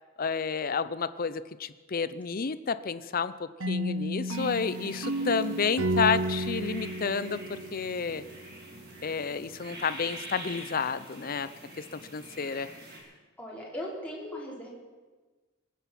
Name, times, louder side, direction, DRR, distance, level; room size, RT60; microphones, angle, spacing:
voice 1, 0.2-8.2 9.0-11.5 12.1-12.7, left 5 dB, 45° left, 14 dB, 0.6 m, -30 dB
sound 1, 3.6-8.5, right 1 dB, 80° right, 1.0 m, -32 dB
sound 2, 4.3-13.0, right 1 dB, 50° right, 4.1 m, -46 dB
voice 2, 13.4-14.7, left 1 dB, 5° left, -5 dB, 3.7 m, -38 dB
23.5 x 9.5 x 6.0 m, 1.3 s
head